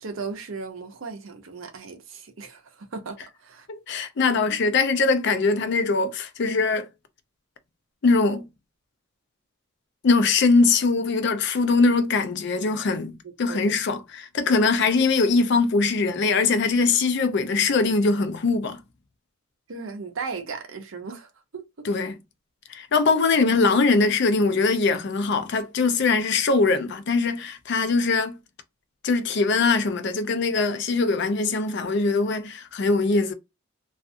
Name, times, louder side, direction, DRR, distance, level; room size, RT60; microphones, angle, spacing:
voice 1, 0.0-3.7 13.5-13.6 19.7-21.7, right 4 dB, 75° right, 0.6 m, -36 dB
voice 2, 3.7-6.9 8.0-8.4 10.0-18.8 21.8-22.1 22.7-28.4 29.0-33.3, left 4 dB, 55° left, 0.4 m, -22 dB
2.4 x 2.4 x 2.5 m
head